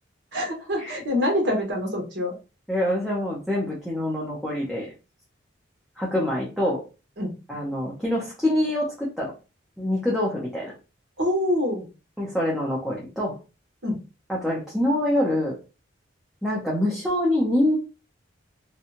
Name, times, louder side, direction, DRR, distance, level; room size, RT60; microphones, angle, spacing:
voice 1, 0.3-2.3 7.2-7.3 11.2-11.9 13.8-14.0, left 1 dB, 60° right, 1 dB, 1.1 m, -25 dB
voice 2, 2.7-4.9 6.0-6.8 7.5-9.3 9.8-10.7 12.2-13.4 14.3-15.6 16.4-17.8, left 1 dB, ahead, -6 dB, 0.7 m, -25 dB
2.7 x 2.3 x 2.9 m, 0.31 s
head